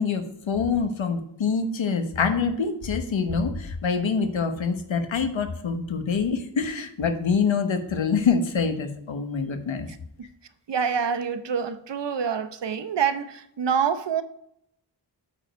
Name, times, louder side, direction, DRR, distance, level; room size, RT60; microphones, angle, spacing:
voice 1, 0.0-9.9, left 5 dB, 90° left, 1.2 m, -25 dB
voice 2, 10.7-14.2, right 7 dB, 65° right, 0.8 m, -26 dB
8.6 x 5.2 x 4.6 m
wide cardioid pair, 120°, 45 cm